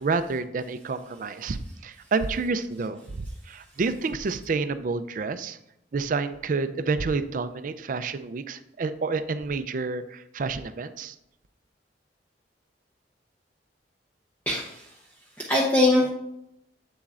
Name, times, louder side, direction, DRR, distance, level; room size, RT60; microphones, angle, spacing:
voice 1, 0.0-5.6 5.9-11.2, right 4 dB, 50° right, 11 dB, 0.4 m, -29 dB
voice 2, 14.5-14.8 15.4-16.1, left 2 dB, 10° left, -4 dB, 0.8 m, -22 dB
7.7 x 7.1 x 2.5 m, 0.81 s
head